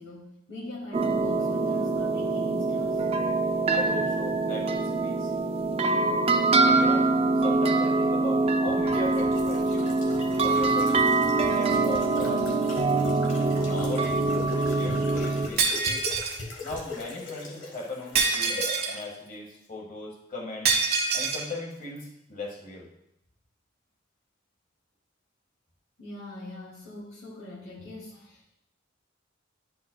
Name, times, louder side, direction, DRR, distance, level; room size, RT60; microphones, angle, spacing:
voice 1, 0.0-3.0 26.0-28.5, left 1 dB, 85° left, -5 dB, 2.5 m, -42 dB
sound 1, 0.9-15.5, right 3 dB, 30° right, 0.4 m, -24 dB
voice 2, 3.7-5.3 6.6-7.1 7.4-9.9 10.4-12.5 13.1-14.2 14.5-16.1 16.6-20.7 21.1-22.9, left 2 dB, 45° left, -1 dB, 1.7 m, -38 dB
sound 2, 8.7-19.0 19.3-19.4, left 3 dB, 70° left, 1.6 m, -40 dB
Shatter, 15.6-16.4 18.1-19.0 20.6-21.5, right 5 dB, 55° right, 1.2 m, -25 dB
11.0 x 5.5 x 2.3 m, 0.80 s
head